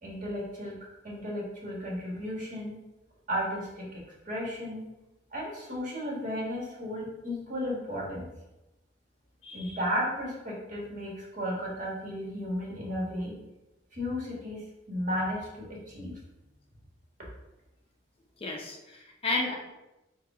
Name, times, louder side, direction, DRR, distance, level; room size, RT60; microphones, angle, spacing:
voice 1, 0.0-0.7 1.0-2.8 3.3-4.8 5.3-8.3 9.5-13.3 13.9-16.1, equal, 45° right, -3 dB, 1.5 m, -34 dB
voice 2, 9.4-9.8 18.4-19.5, left 2 dB, 30° left, 0 dB, 0.6 m, -33 dB
4.7 x 2.3 x 4.8 m, 0.98 s
head